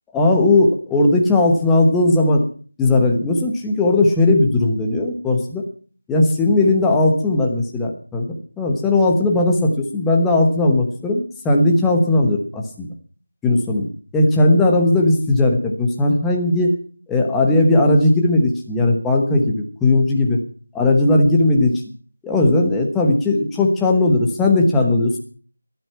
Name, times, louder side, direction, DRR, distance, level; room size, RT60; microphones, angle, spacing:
voice 1, 0.1-2.4 2.8-5.6 6.1-8.3 8.6-12.9 13.4-13.9 14.1-16.7 17.1-20.4 20.7-21.8 22.2-25.2, left 2 dB, 5° left, 0 dB, 1.1 m, -17 dB
15.0 x 11.5 x 6.0 m, 0.42 s
figure-of-eight pair, 175°, 0 cm